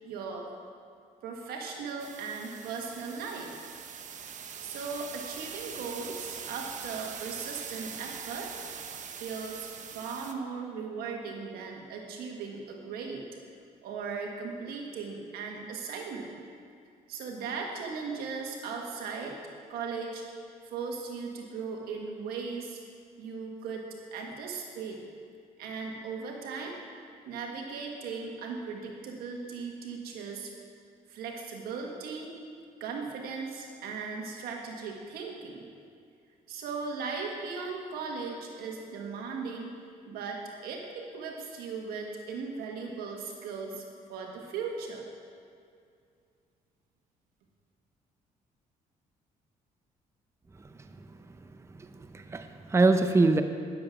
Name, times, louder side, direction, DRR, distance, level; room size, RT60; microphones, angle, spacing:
voice 1, 0.0-0.5 1.2-3.5 4.6-8.5 9.2-13.3 13.8-16.4 17.1-19.4 19.7-20.2 20.6-22.8 23.2-23.9 24.1-25.0 25.6-26.8 27.3-30.5 31.1-32.3 32.8-35.6 36.5-39.8 40.1-43.8 44.1-45.0, right 5 dB, 85° right, 1 dB, 1.7 m, -38 dB
sound 1, 2.0-10.3, right 7 dB, 55° right, 0.8 m, -42 dB
voice 2, 51.7-53.4, right 3 dB, 20° right, 8 dB, 0.6 m, -25 dB
10.5 x 7.7 x 6.0 m, 2.4 s
cardioid pair, 80°, 15 cm